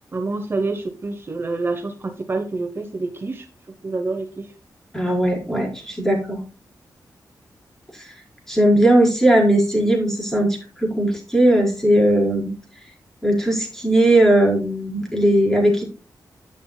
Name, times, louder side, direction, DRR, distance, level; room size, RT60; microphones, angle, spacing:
voice 1, 0.1-3.5 3.8-4.5 5.1-5.2, right 3 dB, 35° right, 5 dB, 1.0 m, -27 dB
voice 2, 4.9-6.4 7.9-8.1 8.5-12.5 13.2-15.8, right 1 dB, 5° left, -2 dB, 4.8 m, -18 dB
11.5 x 8.9 x 2.3 m, 0.34 s
wide cardioid pair, 150°, 7 cm